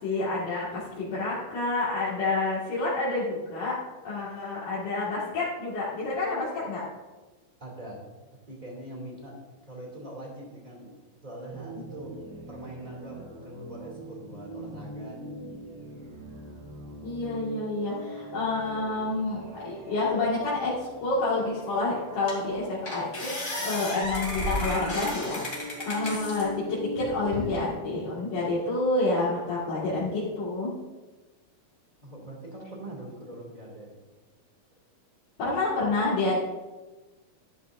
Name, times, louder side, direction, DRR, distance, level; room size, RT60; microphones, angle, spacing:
voice 1, 0.0-3.8 4.0-6.8 17.0-23.3 23.6-30.7 35.4-36.4, left 2 dB, 60° left, -9 dB, 3.4 m, -28 dB
voice 2, 7.6-8.0 8.5-9.4 9.6-12.2 12.5-15.3 32.0-33.9, right 1 dB, 15° right, -2 dB, 2.3 m, -42 dB
sound 1, 11.5-27.6, right 1 dB, 70° right, 3.8 m, -42 dB
sound 2, 21.6-21.7 22.3-22.5 22.9-26.5 27.0-27.7, left 1 dB, 20° left, 2.7 m, -33 dB
12.5 x 11.0 x 2.6 m, 1.2 s
omnidirectional pair, 4.1 m